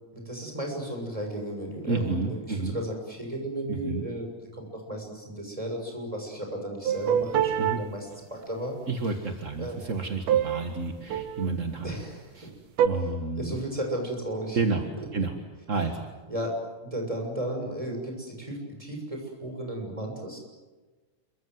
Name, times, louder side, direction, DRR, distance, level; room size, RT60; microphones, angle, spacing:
voice 1, 0.1-8.7 9.6-9.8 11.8-12.4 13.3-14.6 15.0-15.1 16.3-20.4, right 1 dB, 10° right, 2 dB, 6.6 m, -34 dB
voice 2, 1.9-2.8 3.7-4.0 7.6-7.8 8.9-11.9 12.4-12.5 12.8-13.5 14.5-14.9 15.1-15.3 15.7-16.1, right 3 dB, 35° right, 5 dB, 1.4 m, -30 dB
sound 1, 6.9-7.8 10.3-10.7 11.0-11.6 12.8-12.9, right 9 dB, 90° right, 3.0 m, -24 dB
28.0 x 24.0 x 7.9 m, 1.3 s
omnidirectional pair, 3.6 m